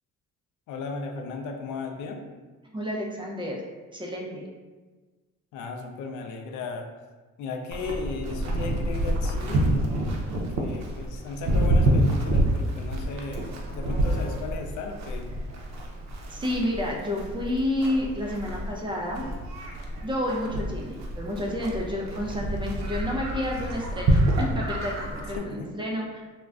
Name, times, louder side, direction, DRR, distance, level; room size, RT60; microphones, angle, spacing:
voice 1, 0.7-2.3 5.5-6.9 7.4-9.8 10.3-15.3 25.4-25.7, left 4 dB, 80° left, 4 dB, 0.4 m, -36 dB
voice 2, 2.7-3.6 3.9-4.4 16.3-19.3 20.0-26.2, left 1 dB, 15° right, -2 dB, 0.5 m, -30 dB
Livestock farm animals working animals, 7.7-25.4, right 1 dB, 65° right, 0.6 m, -28 dB
2.3 x 2.2 x 3.5 m, 1.3 s
cardioid pair, 90°, 30 cm